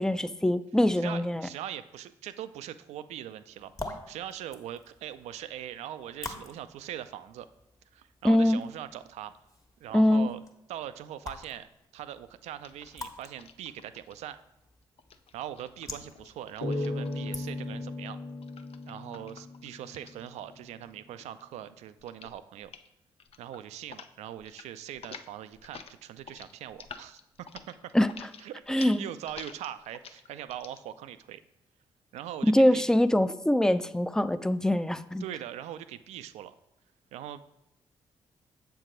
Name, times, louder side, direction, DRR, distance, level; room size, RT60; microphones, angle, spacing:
voice 1, 0.0-1.5 8.2-8.6 9.9-10.3 27.9-28.1 28.7-29.0 32.4-35.2, left 1 dB, 5° left, 13 dB, 0.4 m, -23 dB
voice 2, 1.0-7.5 7.9-9.3 9.8-10.4 10.7-11.7 11.9-14.4 15.3-18.2 18.9-22.7 23.4-27.2 27.7-27.9 28.4-31.4 32.1-32.8 35.2-36.5 37.1-37.4, right 11 dB, 75° right, 12 dB, 0.4 m, -41 dB
sound 1, 3.5-17.9, left 2 dB, 30° left, 1.3 m, -47 dB
sound 2, 12.6-14.1 15.0-17.5 18.4-20.9 21.2-21.6 22.0-22.4 22.6-22.9 23.2-24.1 24.4-24.7 24.9-30.8, left 6 dB, 60° left, 0.5 m, -49 dB
sound 3, 16.6-20.0, left 2 dB, 90° left, 1.3 m, -36 dB
7.2 x 4.7 x 3.8 m, 0.86 s
hypercardioid pair, 45°, 11 cm